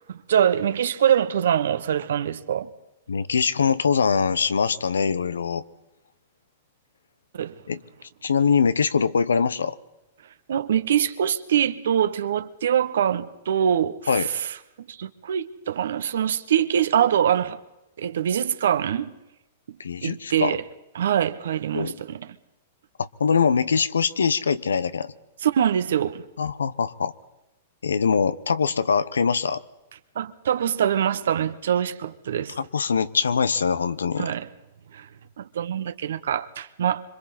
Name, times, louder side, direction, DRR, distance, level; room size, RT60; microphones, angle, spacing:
voice 1, 0.1-2.7 7.3-7.6 10.5-14.0 14.3-14.5 14.9-17.6 18.0-19.1 20.0-20.6 20.9-22.3 25.4-26.2 30.1-32.5 34.2-34.5 34.9-35.1 35.4-37.0, right 9 dB, 75° right, 1.2 m, -24 dB
voice 2, 3.1-5.6 7.7-7.8 8.2-9.7 14.1-14.3 19.8-20.6 21.7-22.0 23.0-25.1 26.4-27.1 27.8-29.6 32.6-34.3, left 6 dB, 90° left, 0.9 m, -23 dB
26.0 x 24.5 x 4.3 m
hypercardioid pair, 115°, 0 cm